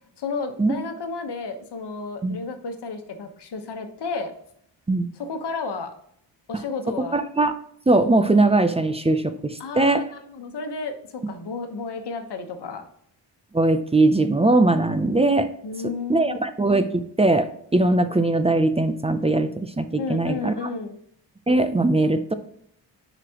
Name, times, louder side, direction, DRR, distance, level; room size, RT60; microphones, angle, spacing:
voice 1, 0.2-4.3 5.2-5.9 6.5-7.2 9.6-11.0 11.3-12.8 15.6-16.4 20.0-21.0, left 4 dB, 65° left, 6 dB, 1.2 m, -32 dB
voice 2, 7.1-7.5 7.9-10.0 13.5-15.5 15.8-20.7 21.5-22.3, right 2 dB, 15° right, 9 dB, 0.4 m, -20 dB
9.8 x 5.1 x 2.9 m, 0.69 s
wide cardioid pair, 140°, 43 cm